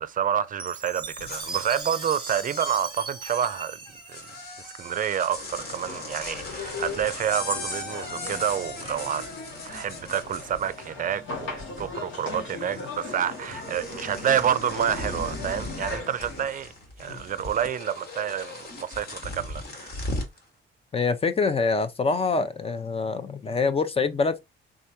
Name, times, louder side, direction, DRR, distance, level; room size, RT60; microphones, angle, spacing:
voice 1, 0.0-3.8 4.1-4.2 4.6-9.3 9.6-16.7 17.0-20.0, right 9 dB, 45° right, 0.5 m, -28 dB
Chime, 0.6-4.9, right 4 dB, 25° right, 0.9 m, -38 dB
sound 1, 1.0-11.1 11.3-12.1 12.3-20.4, left 2 dB, 50° left, 1.5 m, -38 dB
sound 2, 5.6-16.4, left 4 dB, 75° left, 1.9 m, -39 dB
voice 2, 20.9-24.4, left 4 dB, 30° left, 0.7 m, -25 dB
3.7 x 3.3 x 2.7 m
cardioid pair, 90°, 20 cm